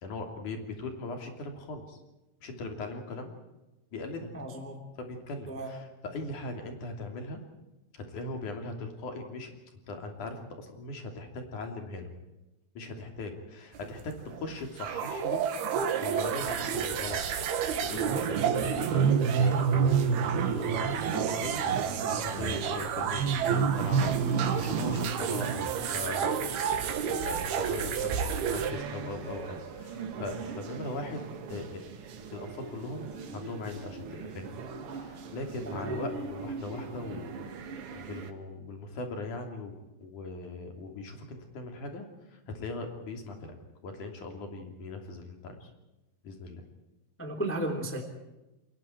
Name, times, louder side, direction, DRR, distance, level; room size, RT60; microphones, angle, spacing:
voice 1, 0.0-2.0 2.4-3.3 3.9-4.3 5.0-7.4 7.9-9.5 9.9-12.1 12.8-15.5 16.0-26.3 26.7-31.2 31.5-31.9 32.3-34.5 34.9-37.5 37.9-43.6 43.8-45.7 46.2-46.7, left 2 dB, 55° left, 4 dB, 4.3 m, -40 dB
voice 2, 4.3-4.9 5.5-5.7 35.6-36.0 47.2-48.0, right 1 dB, 5° left, 3 dB, 2.3 m, -34 dB
Alien Voices, 13.7-28.7, right 7 dB, 80° right, 3.7 m, -28 dB
sound 1, 21.1-38.3, right 5 dB, 50° right, 1.8 m, -42 dB
29.0 x 22.0 x 4.6 m, 1.0 s
omnidirectional pair, 4.5 m